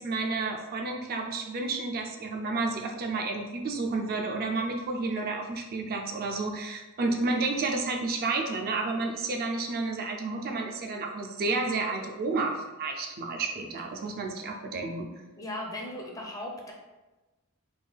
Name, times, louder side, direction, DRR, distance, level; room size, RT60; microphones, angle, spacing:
voice 1, 0.0-15.1, right 3 dB, 45° right, 2 dB, 0.4 m, -31 dB
voice 2, 15.4-16.7, left 1 dB, 15° left, -1 dB, 0.5 m, -37 dB
3.5 x 2.2 x 3.3 m, 1.1 s
head